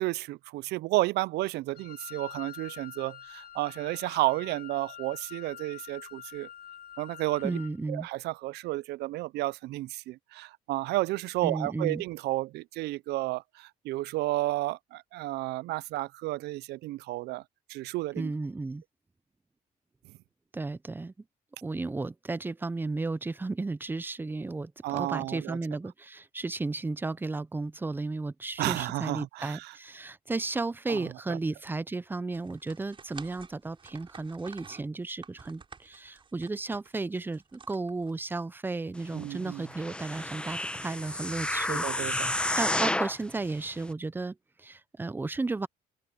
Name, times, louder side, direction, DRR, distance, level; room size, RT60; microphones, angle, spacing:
voice 1, 0.0-6.5 7.0-7.6 7.9-17.4 17.7-18.3 24.8-25.6 28.6-29.7 30.9-31.4 39.1-39.6 41.7-42.3, right 18 dB, 80° right, 0.5 m, -32 dB
Wind instrument woodwind instrument, 1.8-7.8, left 10 dB, 70° left, 3.4 m, -46 dB
voice 2, 7.4-8.1 11.4-12.0 18.2-18.8 20.5-21.1 21.6-45.7, right 3 dB, 10° right, 0.5 m, -34 dB
sound 1, 32.3-38.4, right 5 dB, 30° right, 5.5 m, -51 dB
sound 2, 39.7-43.2 43.8-43.9, left 1 dB, 5° left, 1.1 m, -30 dB
open air
cardioid pair, 110°, 17 cm